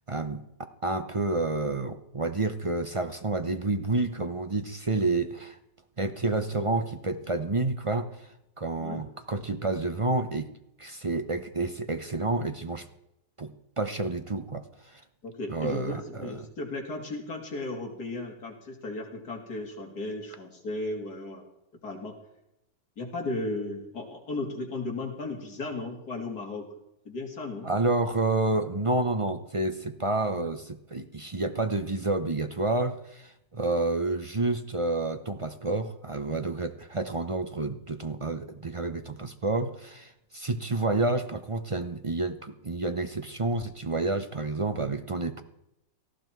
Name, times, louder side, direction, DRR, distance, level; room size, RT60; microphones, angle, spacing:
voice 1, 0.1-5.6 6.0-10.5 10.8-12.9 13.4-15.0 15.5-16.5 27.6-45.4, right 2 dB, 45° right, 8 dB, 0.4 m, -29 dB
voice 2, 15.2-21.4 21.8-22.1 23.0-26.7 27.0-27.7, left 2 dB, 60° left, 1 dB, 3.4 m, -35 dB
18.0 x 14.5 x 4.6 m, 0.84 s
omnidirectional pair, 1.9 m